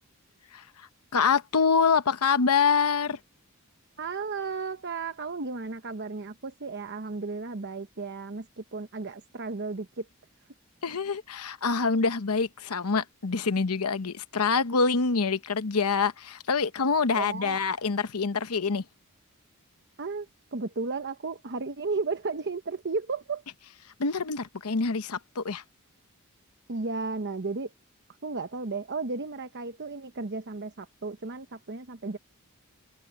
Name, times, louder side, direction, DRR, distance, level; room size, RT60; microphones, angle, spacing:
voice 1, 1.1-3.2 10.8-18.8 24.0-25.6, left 5 dB, 80° left, 0.9 m, -26 dB
voice 2, 4.0-10.1 17.1-17.6 20.0-23.4 26.7-27.7 28.2-32.2, right 4 dB, 50° right, 0.9 m, -34 dB
open air
head